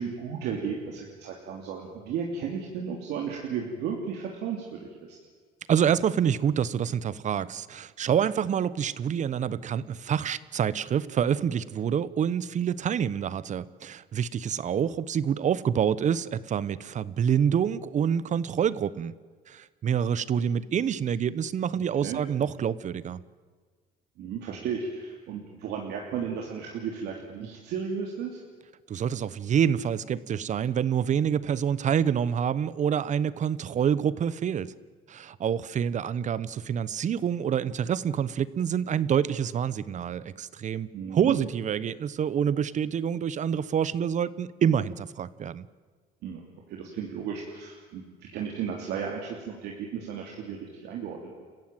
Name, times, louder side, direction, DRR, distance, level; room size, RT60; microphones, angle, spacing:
voice 1, 0.0-5.2 22.0-22.2 24.2-28.4 40.9-41.4 46.2-46.4 46.7-51.4, right 7 dB, 80° right, 0 dB, 3.2 m, -34 dB
voice 2, 5.7-19.1 19.5-23.2 28.9-34.7 35.1-45.6, right 8 dB, 45° right, 18 dB, 1.0 m, -27 dB
29.5 x 15.5 x 9.1 m, 1.6 s
cardioid pair, 110°, 17 cm